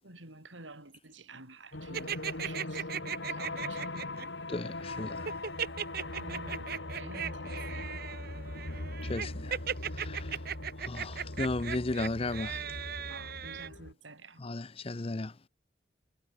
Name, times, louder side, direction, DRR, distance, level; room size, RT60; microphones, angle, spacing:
voice 1, 0.0-4.0 5.9-8.2 13.1-14.4, right 3 dB, 90° right, 7.5 m, -50 dB
sound 1, 1.7-13.9, left 2 dB, 70° left, 2.8 m, -40 dB
sound 2, 1.9-4.2 5.2-13.7, right 8 dB, 55° right, 1.3 m, -37 dB
voice 2, 4.5-5.3 9.0-9.6 9.9-10.4 10.8-12.6 14.4-15.3, left 2 dB, 30° left, 0.7 m, -35 dB
head